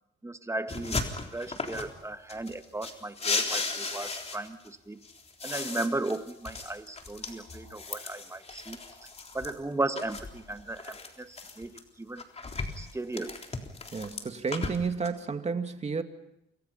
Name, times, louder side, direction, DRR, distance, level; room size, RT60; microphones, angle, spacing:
voice 1, 0.2-5.0 5.4-8.8 9.3-12.3 12.8-13.4, right 2 dB, 15° right, 9 dB, 1.7 m, -36 dB
sound 1, 0.7-2.0 2.3-4.7 5.0-9.5 10.0-11.8 12.2-15.1, left 3 dB, 30° left, 3.9 m, -36 dB
voice 2, 13.9-16.0, right 5 dB, 35° right, 7 dB, 2.3 m, -31 dB
28.5 x 24.5 x 5.7 m, 0.82 s
cardioid pair, 90°, 20 cm